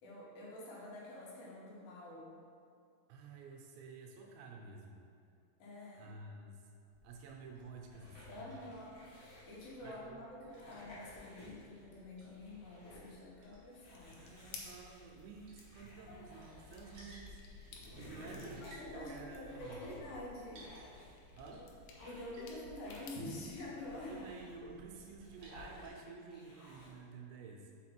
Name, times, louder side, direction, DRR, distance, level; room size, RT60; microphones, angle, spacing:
voice 1, 0.0-2.4 5.6-6.1 8.3-14.4 16.1-16.2 18.6-20.7 21.5-21.7 22.0-24.3, left 2 dB, 75° left, -5 dB, 3.1 m, -48 dB
voice 2, 3.1-5.0 6.0-6.7 7.0-8.7 9.8-10.2 14.2-17.4 18.0-18.6 18.9-19.9 21.3-21.6 23.9-27.7, right 4 dB, 85° right, 0 dB, 3.0 m, -51 dB
Liquid, 6.9-25.9, left 1 dB, 60° right, 2.6 m, -57 dB
sound 1, 7.9-10.0 10.4-11.8 12.1-13.1 13.7-17.0 17.4-19.0 19.4-20.1 20.5-21.5 21.8-22.4 22.8-23.3 23.7-24.5 25.0-25.9 26.3-27.0, left 1 dB, 50° left, 1.7 m, -56 dB
sound 2, 13.9-23.6, left 5 dB, 90° left, 3.1 m, -58 dB
6.5 x 4.7 x 4.3 m, 2.4 s
omnidirectional pair, 5.2 m